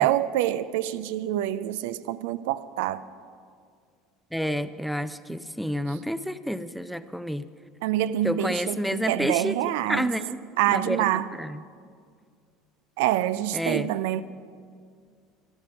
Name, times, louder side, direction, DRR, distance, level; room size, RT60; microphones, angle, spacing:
voice 1, 0.0-3.0 7.8-10.1 10.6-11.3 13.0-14.2, right 13 dB, 60° right, 0.4 m, -26 dB
voice 2, 4.3-7.5 8.2-9.6 9.9-10.4 10.7-11.0 11.4-11.6 13.5-13.9, equal, ahead, 0.6 m, -29 dB
15.5 x 12.5 x 5.9 m
figure-of-eight pair, 65°, 0 cm